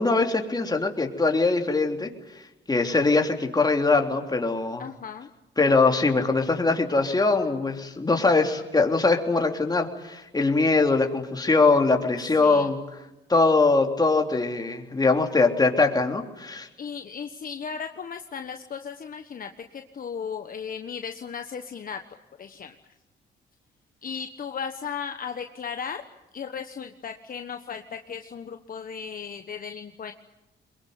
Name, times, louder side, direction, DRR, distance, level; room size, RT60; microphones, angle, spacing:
voice 1, 0.0-2.1 2.7-4.8 5.6-12.8 13.3-16.7, left 3 dB, 20° left, 3 dB, 3.4 m, -22 dB
voice 2, 4.8-5.3 12.4-12.7 16.8-22.0 22.4-22.7 24.0-26.0 26.3-30.1, left 6 dB, 45° left, 6 dB, 1.3 m, -36 dB
22.5 x 22.5 x 9.6 m, 0.95 s
cardioid pair, 90°, 20 cm